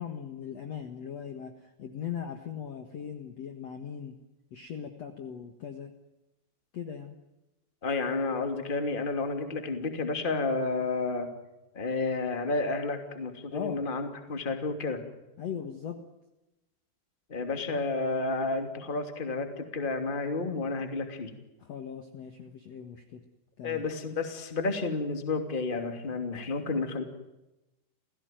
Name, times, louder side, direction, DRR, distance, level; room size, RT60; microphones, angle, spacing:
voice 1, 0.0-1.5 1.8-4.2 4.5-5.9 6.7-7.1 13.5-13.9 15.4-16.0 21.6-23.2 23.6-23.8, left 8 dB, 55° left, 7 dB, 2.1 m, -39 dB
voice 2, 7.8-11.3 11.7-15.0 17.3-21.3 23.6-27.0, left 3 dB, 15° left, 7 dB, 2.1 m, -31 dB
29.5 x 17.0 x 9.2 m, 0.97 s
omnidirectional pair, 4.8 m